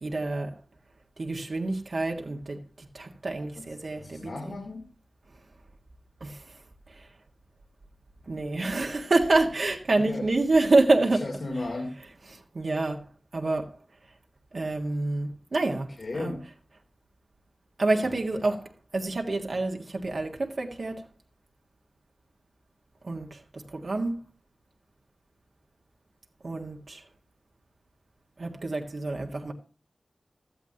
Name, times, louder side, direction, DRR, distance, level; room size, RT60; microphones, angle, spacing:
voice 1, 0.0-0.5 1.2-2.6 2.9-4.6 6.2-6.4 8.3-11.2 12.5-13.0 13.3-13.7 14.5-15.9 16.2-16.3 17.8-18.6 18.9-21.0 23.0-24.2 26.4-27.0 28.4-29.5, right 2 dB, 65° right, 1.7 m, -27 dB
voice 2, 3.9-4.8 10.0-10.3 11.0-11.9 16.0-16.5 18.0-18.6, left 2 dB, 75° left, 2.8 m, -36 dB
15.5 x 13.0 x 2.9 m
wide cardioid pair, 65°, 0 cm